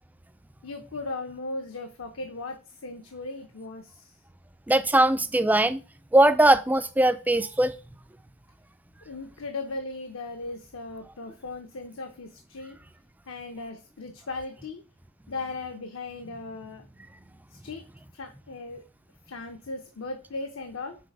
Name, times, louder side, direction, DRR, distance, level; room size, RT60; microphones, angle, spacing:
voice 1, 0.6-4.1 9.1-12.8 13.3-14.8 15.3-16.9 17.5-17.8 18.1-18.8 19.3-21.0, left 3 dB, 70° left, 0.8 m, -37 dB
voice 2, 4.7-5.8 6.1-7.7, right 1 dB, 10° right, 0.4 m, -20 dB
6.1 x 4.2 x 4.6 m
head